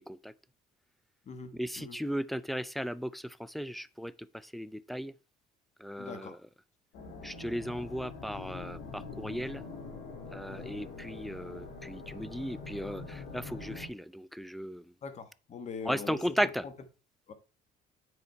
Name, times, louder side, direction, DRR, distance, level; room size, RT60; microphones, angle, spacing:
voice 1, 1.6-4.1 4.5-5.1 5.8-6.4 7.2-9.6 10.3-14.8 15.8-16.7, equal, ahead, 0.4 m, -36 dB
voice 2, 6.0-6.4 10.5-10.8 15.0-16.3 16.6-16.7 17.3-17.4, left 5 dB, 40° left, 1.4 m, -42 dB
sound 1, 6.9-13.9, left 4 dB, 75° left, 2.5 m, -44 dB
9.7 x 4.0 x 4.5 m
cardioid pair, 110°, 17 cm